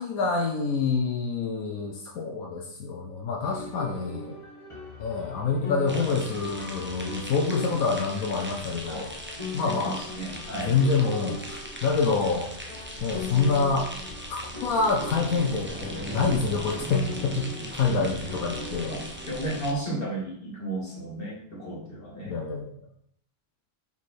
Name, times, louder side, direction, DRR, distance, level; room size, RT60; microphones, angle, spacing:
voice 1, 0.0-4.3 5.0-9.1 9.5-10.1 10.6-12.5 13.0-13.9 14.3-18.9 22.2-22.7, left 4 dB, 80° left, 0 dB, 1.2 m, -27 dB
sound 1, 3.4-19.6, left 4 dB, 20° left, 1.4 m, -41 dB
sound 2, 5.9-19.7, right 1 dB, 10° right, 0.7 m, -39 dB
voice 2, 9.7-10.8 17.6-18.0 18.9-19.0 19.3-22.4, right 2 dB, 40° left, -3 dB, 2.2 m, -34 dB
5.6 x 4.8 x 4.2 m, 0.69 s
omnidirectional pair, 1.5 m